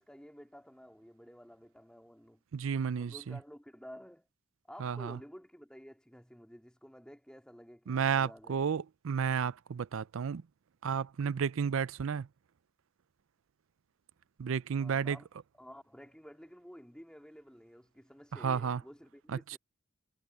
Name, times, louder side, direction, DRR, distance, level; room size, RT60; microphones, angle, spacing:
voice 1, 0.0-2.4 3.0-4.3 4.7-8.6 14.8-15.3 15.5-19.6, equal, 5° left, 2.1 m, -52 dB
voice 2, 2.5-3.4 4.8-5.2 7.9-10.4 10.8-12.3 14.4-15.2 18.4-18.8, right 7 dB, 70° right, 0.4 m, -32 dB
head